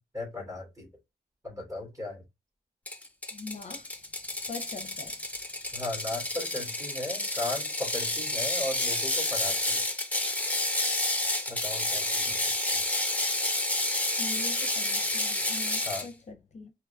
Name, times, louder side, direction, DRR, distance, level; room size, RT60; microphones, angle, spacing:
voice 1, 0.1-0.9 1.4-2.2 5.7-9.8 11.5-12.4 12.7-12.8 15.8-16.1, left 2 dB, 20° right, 3.1 m, -36 dB
Ratchet pawl, 2.9-16.1, left 1 dB, 10° left, 0.8 m, -30 dB
voice 2, 3.3-3.9 4.5-5.2 14.2-16.7, left 3 dB, 40° left, 0.7 m, -42 dB
4.7 x 3.0 x 3.5 m
wide cardioid pair, 135°, 17 cm